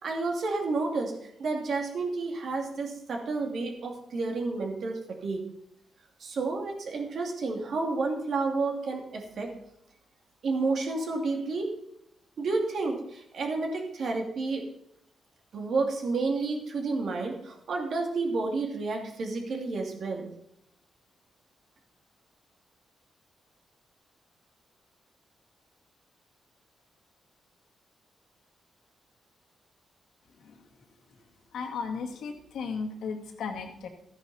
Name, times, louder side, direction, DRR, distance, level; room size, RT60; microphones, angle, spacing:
voice 1, 0.0-5.4 6.2-9.5 10.4-11.7 12.4-14.7 15.5-20.3, right 3 dB, 60° right, 2 dB, 2.6 m, -30 dB
voice 2, 31.5-33.9, left 5 dB, 90° left, 2 dB, 2.1 m, -35 dB
14.5 x 9.3 x 4.2 m, 0.76 s
cardioid pair, 135°, 0 cm